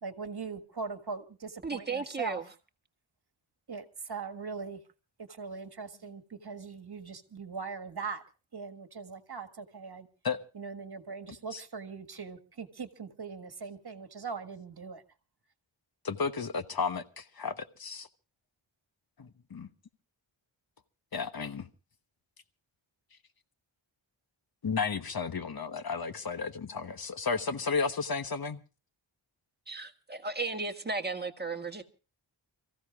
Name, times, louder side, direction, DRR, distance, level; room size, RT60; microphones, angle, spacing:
voice 1, 0.0-2.4 3.7-4.8 5.2-8.2 8.5-10.1 10.5-15.0, right 5 dB, 50° right, 1.7 m, -40 dB
voice 2, 1.6-2.4 29.7-31.8, right 3 dB, 20° right, 1.6 m, -35 dB
voice 3, 16.0-18.1 19.2-19.7 21.1-21.7 24.6-28.6, left 5 dB, 45° left, 1.1 m, -33 dB
29.5 x 15.0 x 2.4 m
wide cardioid pair, 70°, 48 cm